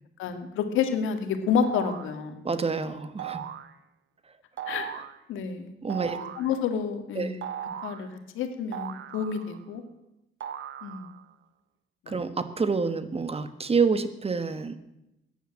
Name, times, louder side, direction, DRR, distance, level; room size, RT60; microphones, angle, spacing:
voice 1, 0.2-2.4 4.7-5.0 5.3-5.7 6.1-7.4 7.8-8.1 8.3-9.8 10.8-11.1 12.1-12.2, left 7 dB, 90° left, 7 dB, 2.1 m, -29 dB
sound 1, 1.6-2.2 3.2-3.7 4.6-5.2 5.9-6.5 7.4-8.1 8.7-9.7 10.4-11.2, right 10 dB, 70° right, 1.0 m, -37 dB
voice 2, 2.4-3.4 5.8-6.2 7.1-7.4 12.1-14.8, right 5 dB, 30° right, 12 dB, 1.5 m, -27 dB
15.0 x 10.0 x 8.9 m, 0.90 s
cardioid pair, 90°, 20 cm